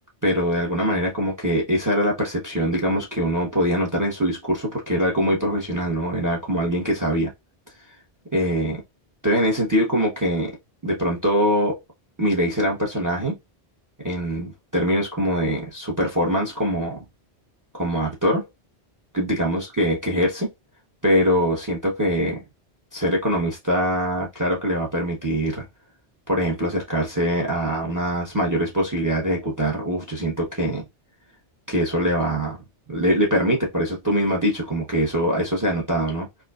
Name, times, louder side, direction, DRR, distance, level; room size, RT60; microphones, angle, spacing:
voice 1, 0.2-7.3 8.3-8.8 9.2-10.5 10.8-11.8 12.2-13.3 14.0-17.0 17.7-18.5 19.1-20.5 21.0-22.4 22.9-25.7 26.3-30.8 31.7-32.6 32.9-36.3, equal, 20° right, 0.7 m, -23 dB
4.7 x 2.1 x 2.3 m
omnidirectional pair, 1.1 m